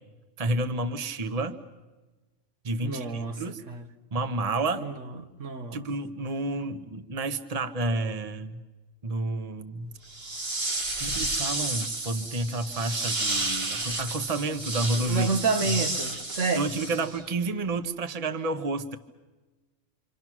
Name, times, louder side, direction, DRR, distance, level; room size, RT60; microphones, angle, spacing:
voice 1, 0.4-1.6 2.6-3.6 4.1-4.9 5.7-8.6 9.0-9.9 11.0-15.3 15.6-15.8 16.5-19.0, right 2 dB, 30° right, 1.1 m, -30 dB
voice 2, 2.8-3.8 4.8-5.1 5.4-5.8 15.1-16.7, right 4 dB, 85° right, 1.7 m, -29 dB
sound 1, 10.1-17.3, right 2 dB, 55° right, 1.9 m, -31 dB
28.0 x 26.5 x 6.1 m
omnidirectional pair, 1.3 m